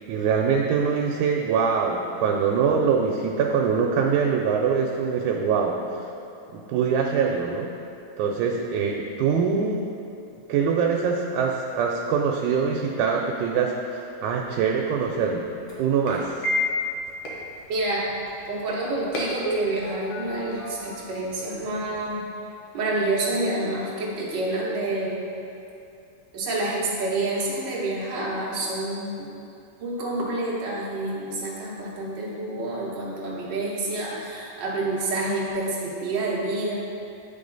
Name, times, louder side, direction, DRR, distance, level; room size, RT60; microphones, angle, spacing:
voice 1, 0.1-6.0 6.5-7.7 8.2-9.9 10.5-15.5 15.8-16.3, right 6 dB, 90° right, 0 dB, 2.0 m, -23 dB
sound 1, 14.2-22.1, left 1 dB, 65° left, 1.8 m, -33 dB
voice 2, 17.7-18.1 18.5-22.2 22.7-25.2 26.3-29.3 29.8-36.7, right 2 dB, 55° right, -5 dB, 1.3 m, -28 dB
9.1 x 3.7 x 3.9 m, 2.7 s
omnidirectional pair, 3.4 m